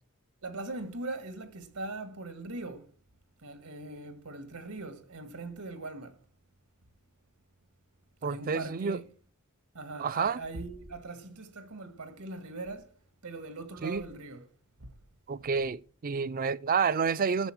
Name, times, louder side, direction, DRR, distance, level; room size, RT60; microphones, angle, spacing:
voice 1, 0.4-2.9 3.4-6.2 8.2-9.0 9.7-12.9 13.2-14.4 14.8-14.9, right 2 dB, 85° right, 1.8 m, -40 dB
voice 2, 8.2-9.0 10.0-10.4 13.8-14.0 15.3-17.5, right 5 dB, 40° right, 0.5 m, -29 dB
13.5 x 6.4 x 6.1 m
head